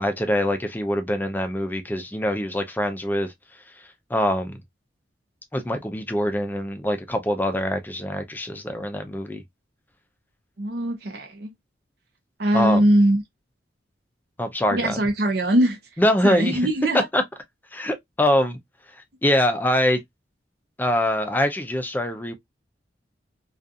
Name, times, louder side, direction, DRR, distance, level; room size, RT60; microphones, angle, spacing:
voice 1, 0.0-3.3 4.1-4.6 5.5-9.4 12.5-12.8 14.4-15.0 16.0-16.6 17.1-17.2 17.7-18.6 19.2-20.0 20.8-22.3, left 1 dB, 10° left, 0.4 m, -24 dB
voice 2, 10.6-11.5 12.4-13.2 14.7-15.8 16.2-17.1, right 1 dB, 55° right, 0.6 m, -21 dB
2.4 x 2.4 x 2.5 m
head